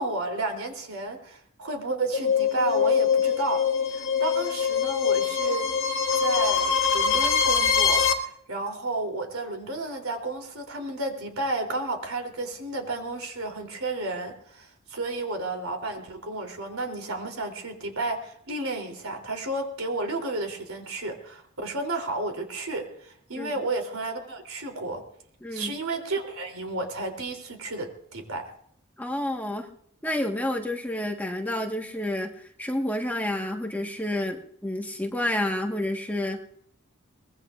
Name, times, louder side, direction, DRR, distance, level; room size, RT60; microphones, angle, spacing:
voice 1, 0.0-3.6 3.9-5.7 6.1-25.0 25.5-28.5, right 2 dB, 90° right, 4 dB, 3.2 m, -32 dB
sound 1, 2.1-8.1, left 7 dB, 65° left, 1.9 m, -23 dB
voice 2, 25.4-25.7 29.0-29.7 30.0-32.3 32.6-36.4, left 1 dB, 10° left, 1 dB, 1.4 m, -29 dB
23.0 x 19.5 x 2.5 m, 0.67 s
head